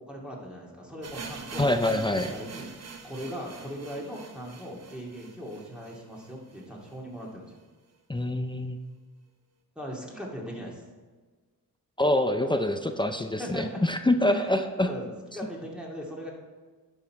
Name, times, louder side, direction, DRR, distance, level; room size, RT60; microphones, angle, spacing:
voice 1, 0.0-7.6 9.8-10.8 13.4-13.8 14.2-14.6 14.8-16.3, equal, 5° right, -3 dB, 2.2 m, -39 dB
sound 1, 1.0-6.9 7.2-7.3 7.5-7.6 8.2-8.3, right 5 dB, 45° right, 1.1 m, -44 dB
voice 2, 1.6-2.3 8.1-8.8 12.0-14.9, left 1 dB, 15° left, 7 dB, 0.6 m, -25 dB
11.0 x 5.5 x 4.6 m, 1.4 s
cardioid pair, 75°, 36 cm